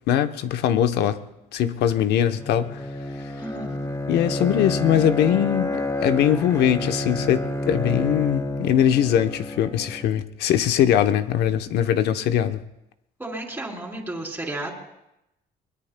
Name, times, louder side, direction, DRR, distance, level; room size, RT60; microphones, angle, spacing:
voice 1, 0.1-1.2 1.5-2.8 4.1-12.6, left 10 dB, 75° left, 0.9 m, -21 dB
Bowed string instrument, 2.3-10.2, left 2 dB, 15° left, 1.0 m, -29 dB
voice 2, 3.4-3.8 13.2-14.7, right 2 dB, 10° right, 3.2 m, -33 dB
23.0 x 20.5 x 2.2 m
cardioid pair, 110°, 17 cm